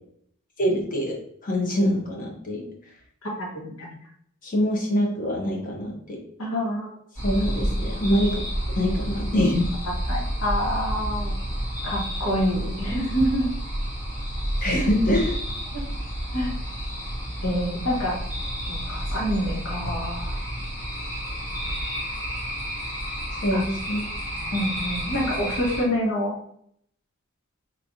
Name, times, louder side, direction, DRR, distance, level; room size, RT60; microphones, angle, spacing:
voice 1, 0.6-1.2 1.4-2.7 4.4-6.2 7.2-8.4 8.8-9.6 14.6-15.4 23.4-24.0, equal, 40° left, -1 dB, 1.1 m, -24 dB
voice 2, 3.2-3.9 6.4-7.0 10.1-11.4 11.8-13.5 14.7-14.9 15.7-15.8 16.3-16.5 17.4-18.2 18.7-20.4 23.5-23.6 24.5-26.4, equal, 75° left, -3 dB, 1.6 m, -27 dB
sound 1, 7.1-25.8, equal, 15° left, 1.5 m, -30 dB
4.6 x 3.3 x 2.7 m, 0.66 s
head